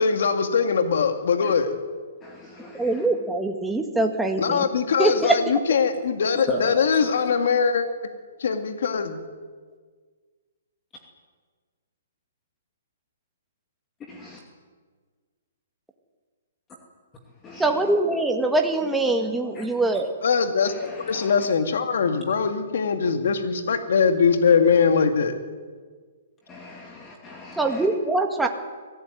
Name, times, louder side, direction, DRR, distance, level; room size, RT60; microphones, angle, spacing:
voice 1, 0.0-1.7 4.4-7.9 8.4-9.2 20.2-25.3, left 6 dB, 70° left, 6 dB, 2.4 m, -22 dB
voice 2, 2.2-3.1 5.1-5.3 6.5-7.2 14.1-14.4 17.4-17.9 19.5-19.7 20.6-21.3 26.5-27.9, left 1 dB, 15° left, 1 dB, 2.6 m, -36 dB
voice 3, 2.8-4.6 5.0-5.4 17.6-20.1 27.6-28.5, right 2 dB, 5° right, 3 dB, 2.0 m, -23 dB
24.5 x 17.5 x 9.4 m, 1.5 s
hypercardioid pair, 160°, 0 cm